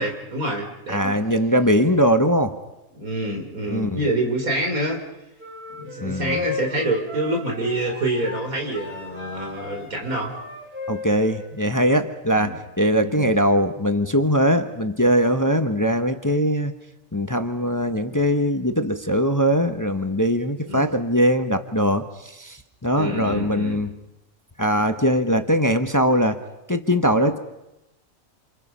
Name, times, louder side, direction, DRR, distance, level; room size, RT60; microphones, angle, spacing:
voice 1, 0.0-1.2 2.9-5.0 5.7-10.3 12.3-12.6 13.0-13.3 20.7-20.9 22.9-23.8, right 1 dB, 75° right, 2 dB, 4.1 m, -27 dB
voice 2, 0.9-2.5 3.7-4.0 6.0-6.4 10.9-16.7 17.1-22.1 22.4-24.0 24.6-26.4 26.7-27.4, equal, 15° left, 8 dB, 1.0 m, -21 dB
sound 1, 5.4-11.9, left 4 dB, 10° right, 4.2 m, -36 dB
28.0 x 27.5 x 5.6 m, 0.93 s
omnidirectional pair, 1.5 m